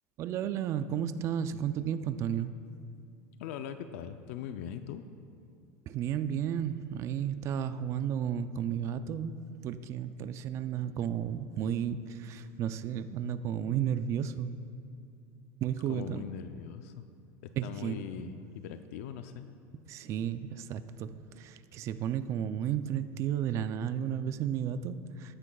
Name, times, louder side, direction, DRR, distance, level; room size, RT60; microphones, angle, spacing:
voice 1, 0.2-2.6 5.9-14.5 15.6-16.2 17.6-18.4 19.7-25.3, right 9 dB, 40° right, 11 dB, 0.4 m, -33 dB
voice 2, 3.4-5.0 15.9-17.0 17.4-19.5, left 9 dB, 75° left, 9 dB, 0.5 m, -41 dB
20.0 x 9.9 x 2.3 m, 2.4 s
supercardioid pair, 140°, 8 cm